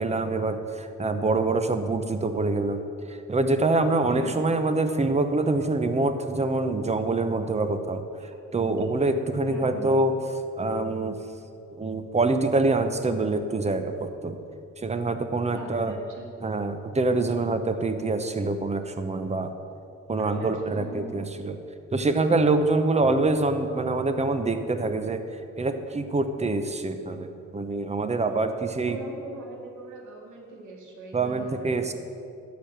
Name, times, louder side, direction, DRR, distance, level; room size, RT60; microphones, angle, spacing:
voice 1, 0.0-8.0 8.5-10.2 10.6-11.2 11.7-14.4 14.8-15.9 16.4-19.5 20.1-21.6 21.9-29.0 31.1-31.9, right 2 dB, 20° right, 8 dB, 0.8 m, -25 dB
voice 2, 9.4-9.9 15.5-16.2 20.2-21.2 28.9-31.9, right 3 dB, 75° right, 0 dB, 2.1 m, -41 dB
12.0 x 5.2 x 6.6 m, 2.6 s
cardioid pair, 90°, 30 cm